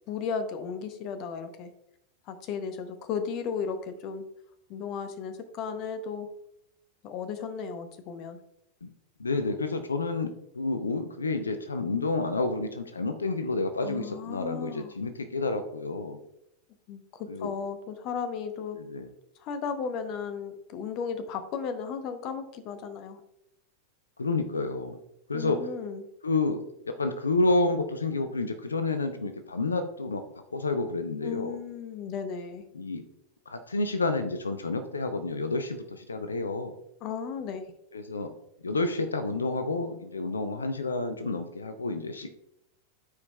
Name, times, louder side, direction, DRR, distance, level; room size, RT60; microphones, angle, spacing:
voice 1, 0.1-1.7 2.3-4.2 4.7-6.3 7.0-8.4 13.8-14.9 16.9-18.8 19.4-23.2 25.3-26.1 31.2-32.6 37.0-37.7, left 6 dB, 40° left, 10 dB, 0.7 m, -35 dB
voice 2, 9.2-16.2 17.3-17.5 18.7-19.1 24.2-25.0 25.3-25.7 26.2-30.2 30.5-31.6 32.7-33.0 33.5-36.7 37.9-38.3 38.6-42.5, left 3 dB, 75° left, 9 dB, 0.6 m, -29 dB
12.5 x 4.9 x 2.3 m, 0.81 s
figure-of-eight pair, 90°, 0 cm